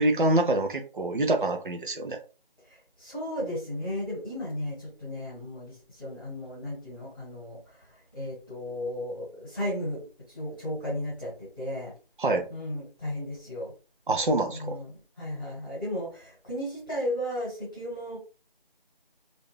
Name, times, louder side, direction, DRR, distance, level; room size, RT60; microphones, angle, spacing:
voice 1, 0.0-2.2 12.2-12.5 14.1-14.8, right 2 dB, 60° right, 4 dB, 0.8 m, -25 dB
voice 2, 2.7-11.9 12.5-13.7 14.5-18.2, left 1 dB, 20° left, -7 dB, 1.3 m, -35 dB
3.3 x 2.6 x 3.2 m, 0.35 s
figure-of-eight pair, 175°, 29 cm